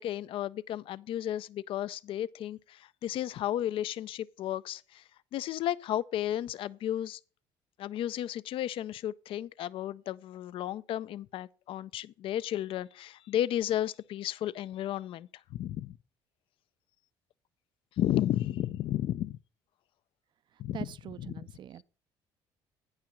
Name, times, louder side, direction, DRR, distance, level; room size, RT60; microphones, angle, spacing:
voice 1, 0.0-5.0 5.3-7.2 7.8-16.0 18.0-19.4 20.6-20.9, left 12 dB, 60° left, 0.4 m, -33 dB
voice 2, 20.7-21.8, right 10 dB, 50° right, 0.5 m, -43 dB
9.0 x 5.7 x 5.1 m
supercardioid pair, 75°, 10 cm